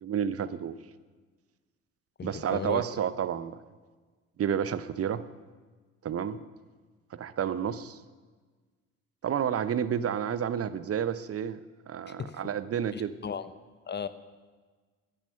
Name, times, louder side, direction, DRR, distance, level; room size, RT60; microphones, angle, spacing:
voice 1, 0.0-0.8 2.2-3.6 4.4-5.2 6.0-6.4 7.1-8.0 9.2-11.6 11.9-13.1, right 8 dB, 35° right, 15 dB, 0.9 m, -30 dB
voice 2, 2.2-2.8 12.1-12.4 12.9-13.5 13.9-14.1, left 6 dB, 25° left, 13 dB, 0.9 m, -36 dB
16.5 x 10.5 x 5.8 m, 1.4 s
figure-of-eight pair, 50°, 40 cm